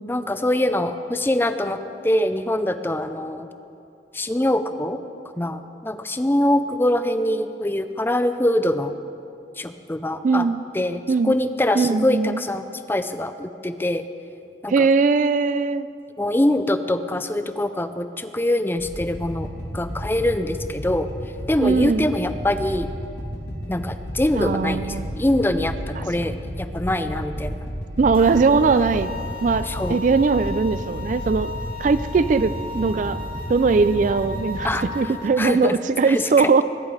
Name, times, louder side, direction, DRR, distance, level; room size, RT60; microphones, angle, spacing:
voice 1, 0.1-3.5 4.1-5.0 5.4-8.9 9.6-10.5 10.7-14.0 14.6-14.9 16.2-19.5 19.7-21.1 21.5-22.9 23.7-27.5 29.6-30.0 34.6-34.8 35.4-35.8 36.1-36.6, left 1 dB, 10° left, 10 dB, 0.5 m, -24 dB
voice 2, 10.2-10.6 11.1-11.4 11.8-12.4 14.7-15.9 21.6-22.1 24.3-25.1 26.0-26.1 28.0-29.1 29.4-31.5 31.8-33.2 33.5-36.6, right 4 dB, 45° right, 14 dB, 0.4 m, -20 dB
sound 1, 18.8-34.7, equal, 75° left, 3.1 m, -33 dB
sound 2, 28.1-35.3, left 2 dB, 30° right, 1.5 m, -36 dB
21.0 x 10.5 x 4.9 m, 2.6 s
head